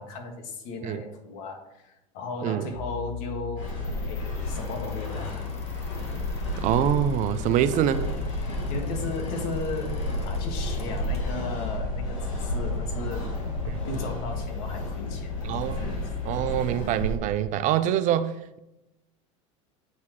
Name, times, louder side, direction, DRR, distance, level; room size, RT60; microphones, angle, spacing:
voice 1, 0.0-3.7 4.1-5.4 7.7-7.8 8.7-13.3 13.8-15.4, left 2 dB, 60° left, 1.7 m, -36 dB
sound 1, 2.7-16.6, left 13 dB, 20° left, 1.6 m, -36 dB
sound 2, 3.6-17.2, right 1 dB, 80° left, 1.9 m, -33 dB
sound 3, 4.4-11.3, left 3 dB, 40° left, 1.5 m, -49 dB
voice 2, 6.6-8.0 13.7-13.8 15.4-15.9 16.2-18.6, right 11 dB, 50° right, 0.5 m, -25 dB
8.5 x 4.1 x 4.7 m
supercardioid pair, 105°, 17 cm